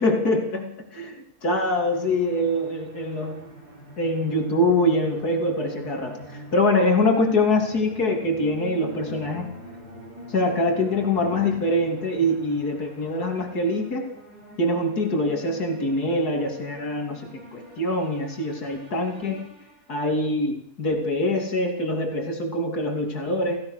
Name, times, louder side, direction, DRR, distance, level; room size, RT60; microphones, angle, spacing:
voice 1, 0.0-3.4 4.0-9.5 10.3-14.1 14.6-17.2 17.8-19.5 19.9-23.6, left 1 dB, 85° left, 2 dB, 3.6 m, -24 dB
sound 1, 1.4-20.2, equal, 90° right, 7.2 m, -44 dB
28.0 x 17.0 x 6.5 m, 0.72 s
omnidirectional pair, 1.6 m